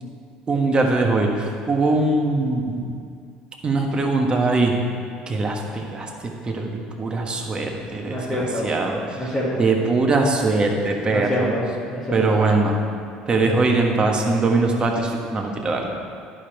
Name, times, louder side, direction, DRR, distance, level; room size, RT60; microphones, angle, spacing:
voice 1, 0.5-1.3 1.7-2.8 3.6-4.7 5.3-6.1 6.5-8.2 8.6-9.0 9.6-11.5 12.1-12.7 13.3-16.0, right 3 dB, 30° right, 1 dB, 1.4 m, -21 dB
voice 2, 8.1-8.7 9.2-9.6 11.0-12.3, equal, 25° left, -9 dB, 2.0 m, -26 dB
10.5 x 5.2 x 4.5 m, 2.4 s
hypercardioid pair, 75°, 3 cm